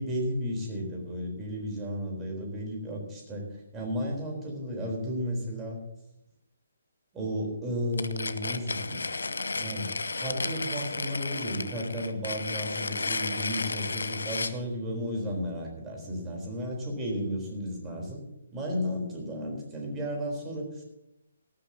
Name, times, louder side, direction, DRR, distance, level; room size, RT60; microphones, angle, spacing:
voice 1, 0.0-5.8 7.1-9.0 9.6-18.2 18.5-20.8, equal, 15° right, 0 dB, 3.9 m, -33 dB
sound 1, 7.9-14.6, left 3 dB, 65° left, 0.9 m, -33 dB
18.5 x 13.5 x 2.8 m, 0.83 s
figure-of-eight pair, 135°, 0 cm